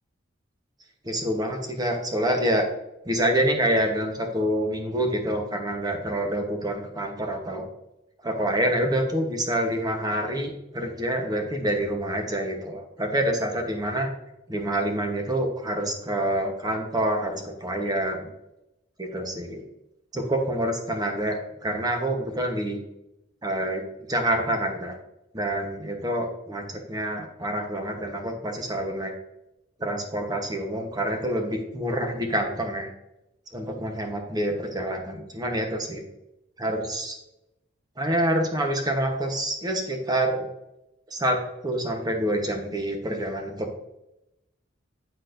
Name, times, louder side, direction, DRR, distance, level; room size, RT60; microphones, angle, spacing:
voice 1, 1.0-2.7 3.0-7.7 8.2-14.1 14.5-18.3 19.0-19.6 20.1-22.8 23.4-23.8 24.1-24.9 25.3-29.1 29.8-32.9 33.5-36.0 36.6-37.1 38.0-40.5 41.1-41.4 41.6-43.7, right 1 dB, 20° right, 3 dB, 1.0 m, -27 dB
9.9 x 4.1 x 2.6 m, 0.87 s
head